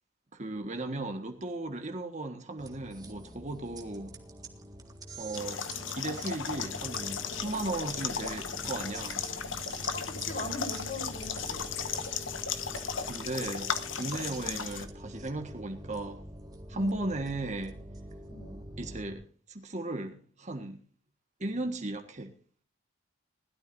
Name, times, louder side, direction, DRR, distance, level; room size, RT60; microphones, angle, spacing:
voice 1, 0.3-4.1 5.2-5.6 5.9-9.2 13.1-16.2 16.7-17.8 18.8-20.8 21.4-22.3, right 2 dB, 35° right, 1.6 m, -36 dB
sound 1, 2.6-19.1, right 1 dB, 20° right, 1.8 m, -45 dB
sound 2, 5.3-14.9, left 7 dB, 70° left, 1.3 m, -36 dB
voice 2, 9.9-11.6 14.2-14.6 16.7-17.0 18.3-18.6, left 1 dB, 50° left, 5.4 m, -41 dB
20.5 x 13.0 x 2.7 m
head